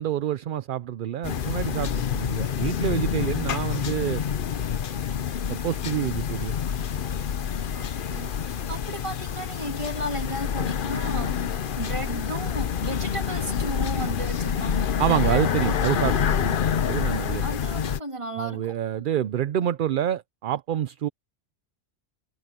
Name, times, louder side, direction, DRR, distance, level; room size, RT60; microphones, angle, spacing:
voice 1, 0.0-4.2 5.4-6.6 15.0-16.6 16.9-17.4 18.3-21.1, right 10 dB, 55° right, 0.6 m, -27 dB
sound 1, 1.2-18.0, left 8 dB, 55° left, 0.8 m, -27 dB
voice 2, 7.7-15.7 17.4-19.1, right 1 dB, 25° right, 2.5 m, -35 dB
omnidirectional pair, 1.2 m